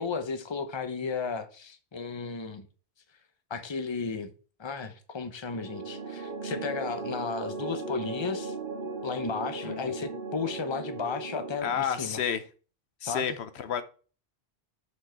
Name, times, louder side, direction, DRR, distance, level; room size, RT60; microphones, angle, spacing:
voice 1, 0.0-2.7 3.5-4.3 4.6-8.5 9.0-12.2 13.1-13.4, left 5 dB, 30° left, 0.8 m, -34 dB
sound 1, 5.5-11.6, right 3 dB, 55° right, 1.4 m, -37 dB
voice 2, 11.6-12.4 13.0-13.8, left 8 dB, 85° left, 1.0 m, -30 dB
6.4 x 5.3 x 4.5 m
omnidirectional pair, 1.1 m